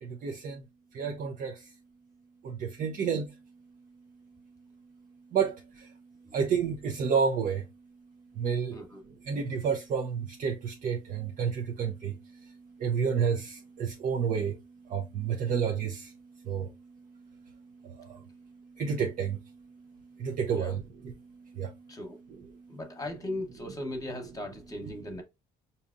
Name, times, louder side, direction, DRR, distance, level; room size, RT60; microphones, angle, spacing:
voice 1, 0.0-0.6 0.9-1.7 2.4-3.3 5.3-5.9 6.3-7.6 8.4-8.8 9.2-12.5 12.8-14.6 14.9-16.1 16.4-16.7 17.8-18.2 18.8-19.4 20.2-21.1 21.5-21.7, right 6 dB, 55° right, 0.6 m, -30 dB
voice 2, 21.9-22.2 22.7-25.2, left 1 dB, 20° left, 1.0 m, -38 dB
4.7 x 2.8 x 2.5 m
cardioid pair, 110°, 17 cm